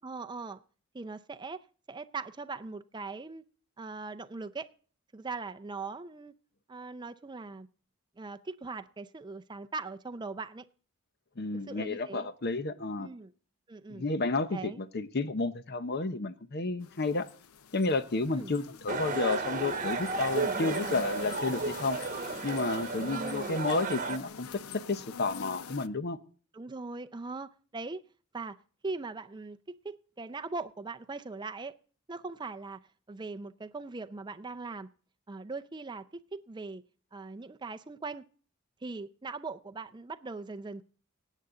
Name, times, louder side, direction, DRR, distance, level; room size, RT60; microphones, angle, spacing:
voice 1, 0.0-0.6 0.9-3.4 3.8-4.7 5.1-6.3 6.7-7.7 8.2-10.6 11.7-12.3 13.0-13.3 13.7-14.0 14.5-14.8 18.3-18.5 20.4-21.0 23.0-23.6 26.5-28.0 28.3-28.6 28.8-31.8 32.1-32.8 33.1-34.9 35.3-36.8 37.1-38.2 38.8-40.8, right 3 dB, 20° right, 0.5 m, -40 dB
voice 2, 11.4-13.1 13.9-17.3 17.7-22.0 22.4-26.2, left 3 dB, 50° left, 0.7 m, -31 dB
sound 1, 16.8-25.9, left 7 dB, 80° left, 0.6 m, -47 dB
sound 2, 18.9-24.2, right 3 dB, 35° right, 1.1 m, -33 dB
18.0 x 8.3 x 3.8 m
head